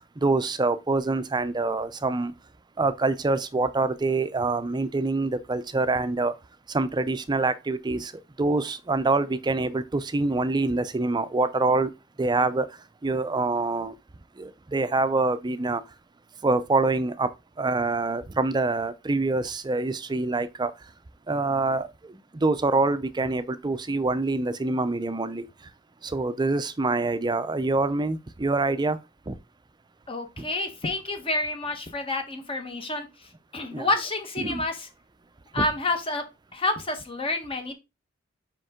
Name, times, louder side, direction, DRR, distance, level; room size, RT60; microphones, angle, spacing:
voice 1, 0.2-2.3 2.8-6.3 6.7-8.1 8.4-11.9 12.2-12.7 13.0-13.9 14.4-15.8 16.4-17.3 17.6-20.7 21.3-21.8 22.4-25.4 26.1-29.0 29.3-29.4 33.7-33.9 34.4-34.6, right 3 dB, 20° right, 0.5 m, -25 dB
voice 2, 30.1-33.1 33.5-34.9 35.5-36.2 36.5-37.7, left 2 dB, 30° left, 1.1 m, -29 dB
5.3 x 5.2 x 3.6 m
head